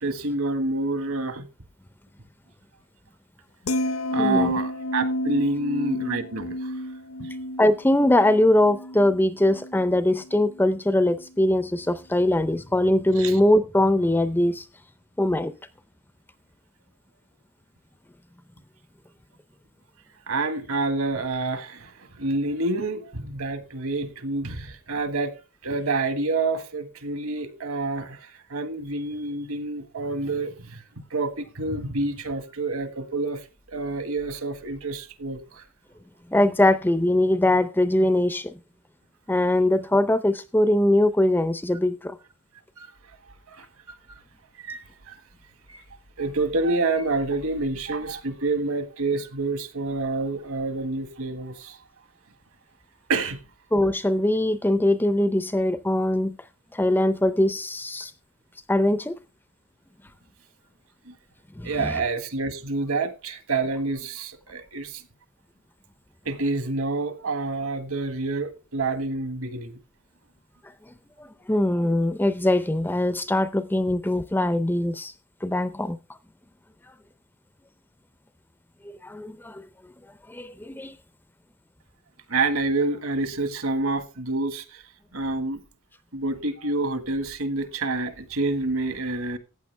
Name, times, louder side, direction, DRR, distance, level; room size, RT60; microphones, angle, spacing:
voice 1, 0.0-1.5 4.1-6.7 7.2-7.3 13.2-13.4 20.3-25.3 25.6-30.8 31.1-35.6 42.8-42.9 43.5-43.7 44.1-44.2 44.6-45.2 45.7-45.8 46.2-51.8 53.1-53.4 61.0-61.1 61.6-65.0 66.2-69.8 82.3-84.8 85.1-85.6 86.1-89.4, right 3 dB, 65° right, 1.6 m, -28 dB
sound 1, 3.7-9.9 10.3-10.6, left 1 dB, 65° left, 0.8 m, -30 dB
voice 2, 4.2-4.5 7.6-14.6 15.2-15.5 36.3-38.6 39.3-42.2 53.7-56.4 56.7-58.1 58.7-59.2 61.6-61.9 71.2-75.1 75.4-76.0 78.8-79.7 80.3-81.0, left 1 dB, 10° left, 0.5 m, -22 dB
15.0 x 9.0 x 3.3 m
head